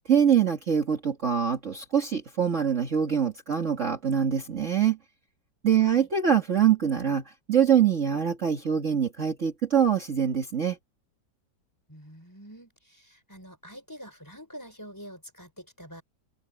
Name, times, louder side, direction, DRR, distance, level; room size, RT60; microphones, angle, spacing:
voice 1, 0.1-5.0 5.6-10.8, right 8 dB, 40° right, 2.1 m, -24 dB
voice 2, 5.8-6.1 11.9-16.0, equal, 10° left, 4.9 m, -46 dB
open air
omnidirectional pair, 2.0 m